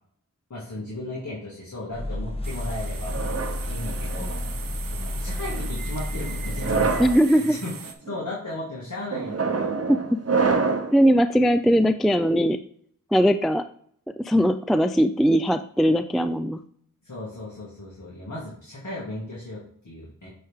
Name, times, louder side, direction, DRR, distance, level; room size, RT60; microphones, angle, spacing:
voice 1, 0.5-3.4 3.7-4.4 4.9-7.7 8.0-9.7 17.0-20.3, left 1 dB, 60° left, -5 dB, 2.1 m, -36 dB
sound 1, 1.9-7.1, left 1 dB, 15° left, 1.0 m, -31 dB
sound 2, 2.4-7.9, right 6 dB, 85° right, 0.7 m, -40 dB
sound 3, 3.1-4.5 5.3-5.7 6.5-7.2 7.8-8.1 9.1-11.0, right 4 dB, 45° right, 0.8 m, -26 dB
voice 2, 7.0-7.6 9.9-10.0 10.9-12.6 13.1-13.6 14.2-16.6, equal, ahead, 9 dB, 0.3 m, -20 dB
8.5 x 3.4 x 3.6 m, 0.62 s
wide cardioid pair, 45°, 33 cm